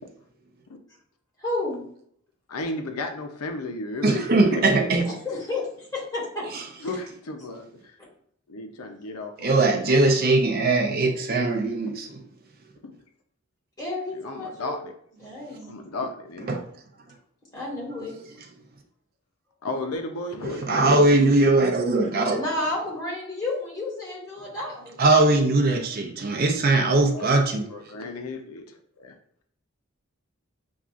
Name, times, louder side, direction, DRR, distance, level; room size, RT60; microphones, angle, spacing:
voice 1, 1.4-1.8 5.0-5.6 5.9-6.4 13.8-14.8 15.2-15.7 17.5-18.1 22.3-25.0, left 2 dB, 15° left, -6 dB, 1.6 m, -31 dB
voice 2, 2.5-5.0 6.8-7.9 8.5-9.8 11.9-12.0 12.8-12.9 14.1-14.9 15.7-16.6 19.6-21.0 26.8-29.2, left 2 dB, 85° left, 5 dB, 0.6 m, -34 dB
voice 3, 4.0-5.0 6.5-6.6 9.4-12.1 16.5-16.6 20.6-22.4 25.0-27.6, right 2 dB, 45° right, 3 dB, 0.5 m, -20 dB
6.9 x 2.4 x 2.4 m, 0.65 s
head